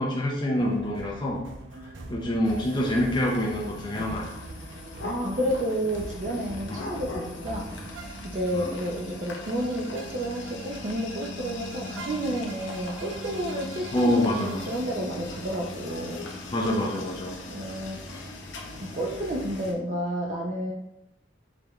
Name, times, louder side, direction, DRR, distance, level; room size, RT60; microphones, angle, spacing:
voice 1, 0.0-1.4 2.1-4.4 6.7-7.0 8.5-8.8 13.9-14.6 16.5-17.4, left 1 dB, 25° left, -2 dB, 0.4 m, -26 dB
sound 1, 0.6-14.8, right 2 dB, 85° right, 0.6 m, -43 dB
sound 2, 2.4-19.7, left 2 dB, 75° left, 0.6 m, -40 dB
voice 2, 4.9-7.7 8.0-16.3 17.5-18.0 18.8-20.7, right 1 dB, 40° right, -1 dB, 0.5 m, -31 dB
4.9 x 3.2 x 2.3 m, 0.84 s
head